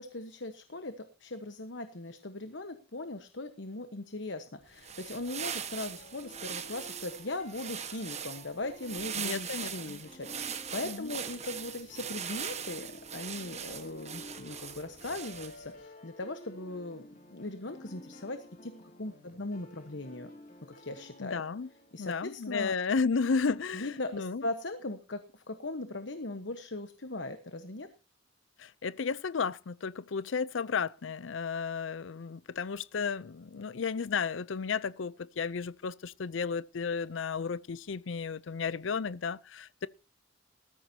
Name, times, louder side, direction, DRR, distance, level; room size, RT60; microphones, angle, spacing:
voice 1, 0.0-18.7 19.0-20.3 20.7-21.4 21.9-22.7 23.7-27.9, left 2 dB, 70° left, 1.2 m, -39 dB
sound 1, 4.7-15.7, right 8 dB, 35° right, 1.4 m, -40 dB
sound 2, 6.0-22.9, left 1 dB, 45° left, 2.8 m, -53 dB
voice 2, 9.2-10.0 10.8-11.1 21.2-21.7 22.0-24.4 28.6-39.9, left 5 dB, 85° left, 0.6 m, -33 dB
19.0 x 14.0 x 2.8 m
head